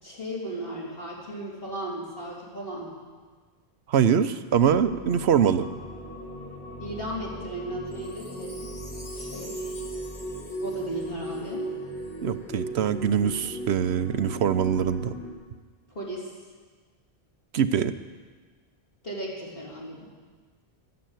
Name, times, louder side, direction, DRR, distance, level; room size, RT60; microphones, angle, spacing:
voice 1, 0.0-2.9 6.8-8.7 9.2-9.6 10.6-11.7 15.9-16.3 19.0-20.1, right 1 dB, 60° left, -4 dB, 4.0 m, -36 dB
voice 2, 3.9-5.7 12.2-15.1 17.5-17.9, right 8 dB, 90° right, 12 dB, 1.0 m, -23 dB
sound 1, 4.5-15.3, right 1 dB, 85° left, 4.1 m, -37 dB
Wind chime, 7.9-12.3 12.8-12.9, left 2 dB, 30° left, 1.4 m, -47 dB
13.0 x 11.0 x 9.2 m, 1.4 s
omnidirectional pair, 1.1 m